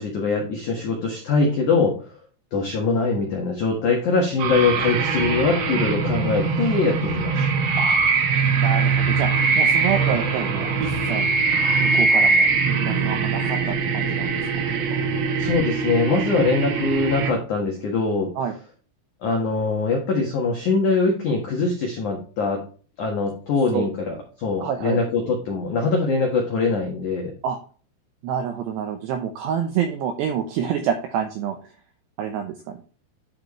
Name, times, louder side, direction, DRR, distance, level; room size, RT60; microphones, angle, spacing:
voice 1, 0.0-1.9 2.5-7.4 15.4-18.3 19.2-22.6 23.0-27.3, left 4 dB, 80° left, 0 dB, 1.7 m, -22 dB
sound 1, 4.4-17.3, right 4 dB, 65° right, 2.8 m, -22 dB
voice 2, 8.5-9.3 9.6-11.3 11.8-14.5 14.9-15.0 18.4-18.6 23.7-23.9 24.6-25.0 27.4-27.6 28.2-31.6 32.2-32.8, right 8 dB, 85° right, 5 dB, 2.4 m, -27 dB
12.0 x 5.2 x 3.1 m, 0.40 s
omnidirectional pair, 6.0 m